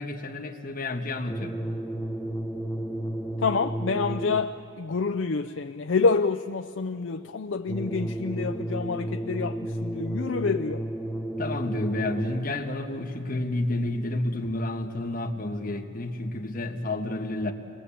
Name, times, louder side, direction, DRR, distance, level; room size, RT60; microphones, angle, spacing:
voice 1, 0.0-1.6 11.4-17.5, left 2 dB, 40° left, 1.5 m, -30 dB
sound 1, 1.3-4.7 7.7-12.7, right 1 dB, 5° left, 0.8 m, -32 dB
voice 2, 3.4-10.8, left 4 dB, 65° left, 0.5 m, -27 dB
28.5 x 21.5 x 8.5 m
head